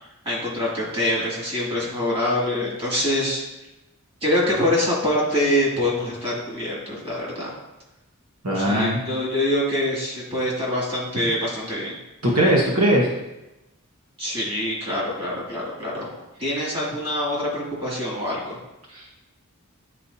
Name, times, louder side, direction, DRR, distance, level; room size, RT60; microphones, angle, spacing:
voice 1, 0.2-3.4 4.2-7.5 8.5-11.9 14.2-18.6, left 1 dB, 25° right, -5 dB, 2.4 m, -25 dB
voice 2, 8.4-9.0 12.2-13.1 18.9-19.2, right 1 dB, 75° right, -3 dB, 1.2 m, -20 dB
9.9 x 4.2 x 2.8 m, 0.96 s
head